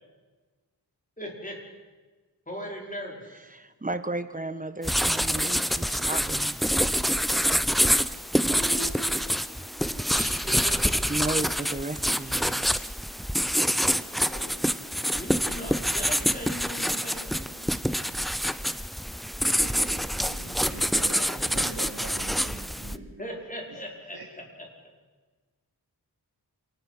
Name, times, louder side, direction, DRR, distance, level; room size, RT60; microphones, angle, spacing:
voice 1, 1.2-1.6 2.5-3.5 8.4-11.0 14.3-17.6 21.1-21.8 23.2-24.2 24.8-24.9, equal, 20° left, 0 dB, 4.8 m, -39 dB
voice 2, 3.5-6.6 11.1-12.9, right 2 dB, 20° right, 11 dB, 1.2 m, -34 dB
sound 1, 4.8-23.0, equal, ahead, 0.6 m, -26 dB
voice 3, 19.5-23.4 23.7-23.8 24.1-24.3, right 4 dB, 70° right, -2 dB, 2.8 m, -43 dB
27.5 x 18.5 x 5.6 m, 1.3 s
wide cardioid pair, 85°, 39 cm